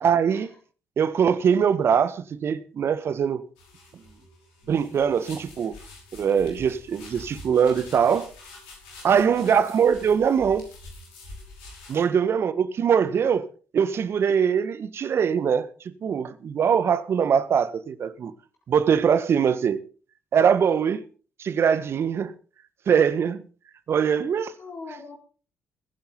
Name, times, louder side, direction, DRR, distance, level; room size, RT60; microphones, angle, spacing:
voice 1, 0.0-0.5 1.0-3.4 4.7-5.7 6.1-8.3 9.0-10.7 11.9-13.5 13.7-15.7 16.0-18.3 18.7-19.8 20.3-21.0 21.4-22.3 22.9-23.4 23.9-24.5, right 7 dB, 55° right, 1.5 m, -22 dB
sound 1, 3.6-12.0, left 2 dB, 80° left, 5.5 m, -46 dB
voice 2, 9.2-9.6 12.1-12.2 24.6-25.2, left 3 dB, 55° left, 4.3 m, -42 dB
21.5 x 10.5 x 4.0 m
figure-of-eight pair, 40°, 5 cm